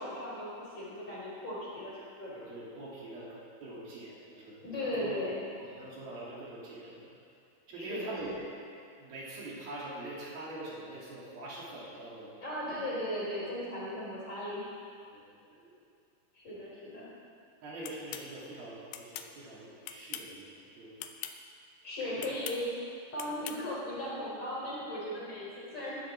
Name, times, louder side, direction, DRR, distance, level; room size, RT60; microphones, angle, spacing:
voice 1, 0.0-2.5 4.6-5.4 7.7-8.3 12.4-14.7 16.3-17.0 19.2-19.3 21.8-22.6 23.1-26.0, left 1 dB, 35° left, -7 dB, 4.5 m, -37 dB
voice 2, 2.3-3.4 3.6-5.3 5.6-7.1 7.7-8.3 9.0-12.4 15.1-15.7 17.6-20.9 22.0-22.3, right 2 dB, 70° right, -7 dB, 4.7 m, -44 dB
sound 1, 17.8-18.3 18.9-19.3 19.8-20.4 21.0-21.4 22.2-22.6 23.2-23.6, left 10 dB, 85° left, 2.8 m, -41 dB
21.0 x 11.5 x 3.7 m, 2.4 s
omnidirectional pair, 4.5 m